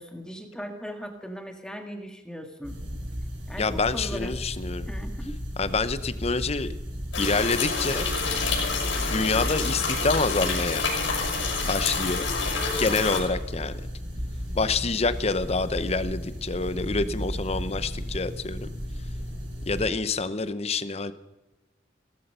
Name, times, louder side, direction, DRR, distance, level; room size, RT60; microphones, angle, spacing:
voice 1, 0.0-2.8 3.5-4.3 4.8-5.4, equal, 5° left, 4 dB, 1.9 m, -38 dB
sound 1, 2.6-19.8, equal, 70° right, 4.9 m, -34 dB
voice 2, 3.6-4.9 5.6-6.7 7.2-8.1 9.1-10.9 11.6-12.3 12.8-13.7 14.5-18.7 19.7-21.1, left 3 dB, 35° left, 13 dB, 0.8 m, -27 dB
sound 2, 7.1-13.2, left 4 dB, 75° left, 7.0 m, -28 dB
17.5 x 15.0 x 5.6 m, 1.1 s
head